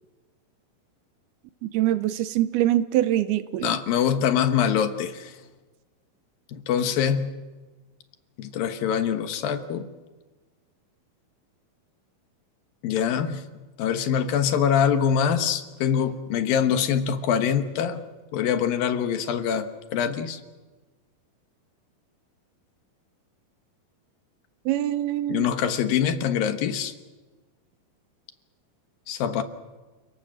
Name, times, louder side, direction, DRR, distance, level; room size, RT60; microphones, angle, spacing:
voice 1, 1.6-3.8 24.7-25.5, right 13 dB, 85° right, 13 dB, 2.9 m, -24 dB
voice 2, 3.6-5.3 6.5-7.3 8.4-9.9 12.8-13.4 13.8-18.0 18.3-20.4 25.3-26.9 29.1-29.4, left 8 dB, 70° left, 9 dB, 2.9 m, -24 dB
29.5 x 18.5 x 7.6 m, 1.3 s
omnidirectional pair, 4.4 m